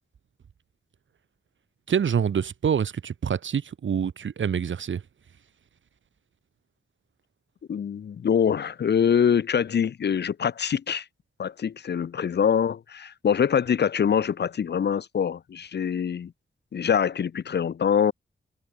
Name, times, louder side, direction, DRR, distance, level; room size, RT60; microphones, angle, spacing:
voice 1, 1.9-5.0, right 7 dB, 75° right, 1.3 m, -26 dB
voice 2, 7.7-11.0 11.4-16.3 16.7-18.1, left 7 dB, 60° left, 0.6 m, -24 dB
wide cardioid pair, 125°, 20 cm